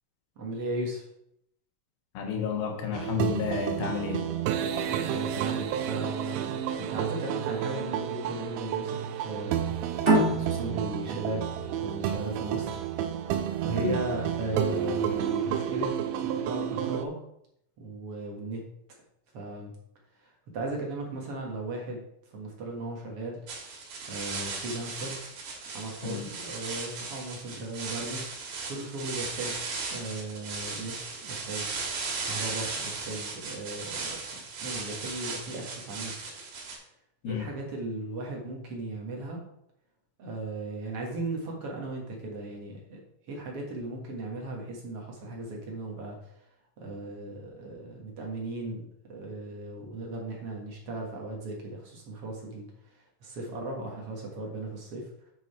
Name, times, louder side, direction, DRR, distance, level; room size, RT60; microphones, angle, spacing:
voice 1, 0.4-1.0 4.8-9.7 10.3-12.8 13.6-15.9 16.2-17.2 17.8-18.6 19.3-19.8 20.2-22.0 22.3-23.4 24.1-25.3 25.7-29.6 29.9-31.7 32.3-34.2 34.6-36.1 37.2-39.4 40.2-43.0 43.3-46.2 46.8-52.7 53.2-55.1, right 2 dB, 50° right, 0 dB, 2.0 m, -36 dB
voice 2, 2.1-4.3 13.8-14.0 26.0-26.3 37.2-37.5, left 7 dB, 75° left, 2 dB, 3.2 m, -31 dB
sound 1, 2.9-17.0, right 9 dB, 85° right, 2.4 m, -31 dB
sound 2, 10.0-13.2, right 1 dB, 20° right, 1.6 m, -27 dB
sound 3, 23.5-36.8, right 4 dB, 65° right, 3.5 m, -37 dB
8.9 x 6.0 x 4.3 m, 0.76 s
omnidirectional pair, 4.4 m